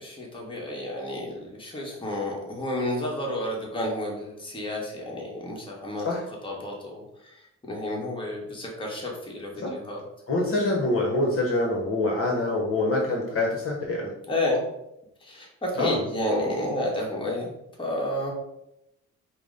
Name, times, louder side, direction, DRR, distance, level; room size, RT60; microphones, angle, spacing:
voice 1, 0.0-6.1 6.4-7.4 7.7-10.0 14.3-14.6 15.2-17.5 17.8-18.3, left 1 dB, 15° left, -2 dB, 1.2 m, -31 dB
voice 2, 10.3-14.1 15.8-16.0, left 2 dB, 45° left, -1 dB, 0.9 m, -25 dB
4.8 x 2.1 x 3.7 m, 0.84 s
cardioid pair, 90°, 30 cm